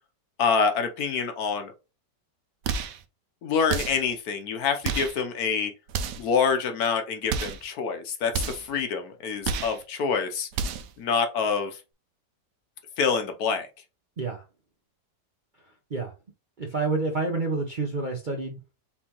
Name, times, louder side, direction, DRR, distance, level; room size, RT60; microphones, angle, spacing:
voice 1, 0.4-1.7 3.4-5.7 6.2-10.5 11.0-11.8 13.0-13.7, left 6 dB, 65° left, 1.2 m, -26 dB
sound 1, 2.6-3.0 3.7-4.1 4.8-5.2 5.9-6.3 7.3-7.7 8.3-8.7 9.4-9.8 10.5-11.0, right 6 dB, 80° right, 1.2 m, -30 dB
voice 2, 16.6-18.6, right 3 dB, 45° right, 0.6 m, -28 dB
4.4 x 3.8 x 2.9 m
omnidirectional pair, 1.8 m